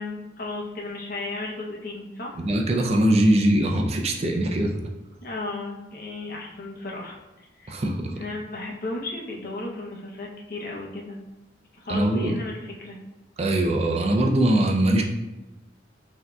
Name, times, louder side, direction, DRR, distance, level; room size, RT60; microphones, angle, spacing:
voice 1, 0.0-2.4 5.2-7.8 8.1-11.3 11.7-13.0, left 2 dB, 50° left, -1 dB, 0.7 m, -34 dB
voice 2, 2.4-4.7 7.7-8.1 11.9-12.4 13.4-15.0, right 1 dB, 35° right, 1 dB, 0.4 m, -21 dB
5.9 x 2.7 x 2.3 m, 1.0 s
head